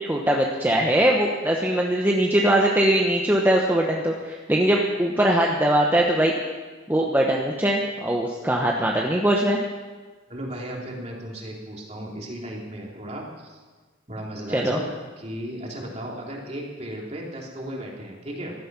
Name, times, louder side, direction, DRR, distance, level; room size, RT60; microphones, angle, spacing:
voice 1, 0.0-6.3 6.9-9.6 14.5-14.8, right 1 dB, 10° right, -1 dB, 1.0 m, -21 dB
voice 2, 10.3-13.6 14.1-14.9 15.2-18.5, right 1 dB, 35° right, -2 dB, 3.0 m, -35 dB
15.5 x 12.5 x 6.1 m, 1.4 s
head